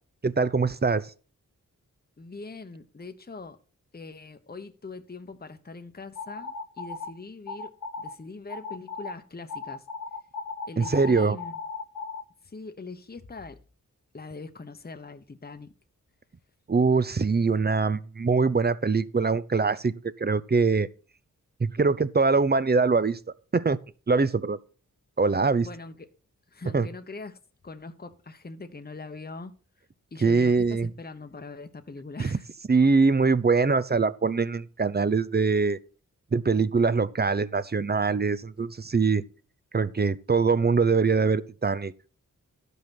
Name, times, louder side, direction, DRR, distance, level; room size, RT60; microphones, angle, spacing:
voice 1, 0.2-1.1 10.8-11.4 16.7-19.9 20.2-20.9 21.6-23.2 23.5-23.8 24.1-24.6 25.2-25.7 26.7-26.9 30.2-30.9 32.2-32.3 32.7-35.8 36.3-39.2 39.7-41.9, right 4 dB, 30° right, 0.6 m, -23 dB
voice 2, 2.2-3.6 3.9-9.8 10.7-11.5 12.4-13.6 14.1-15.7 25.6-26.1 26.5-27.4 27.6-29.5 30.1-32.5, left 3 dB, 30° left, 1.0 m, -42 dB
sound 1, 6.2-7.1 7.5-8.1 8.5-9.1 9.5-12.2, left 4 dB, 70° left, 1.4 m, -36 dB
12.0 x 5.5 x 5.9 m
cardioid pair, 45°, 33 cm